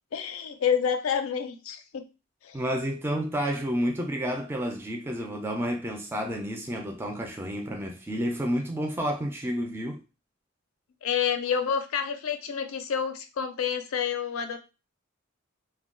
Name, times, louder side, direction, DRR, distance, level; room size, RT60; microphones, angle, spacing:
voice 1, 0.1-2.1 2.4-2.6 11.0-14.6, left 7 dB, 75° left, 0.4 m, -28 dB
voice 2, 2.5-10.0, equal, 10° right, 0.4 m, -30 dB
2.2 x 2.2 x 3.6 m
head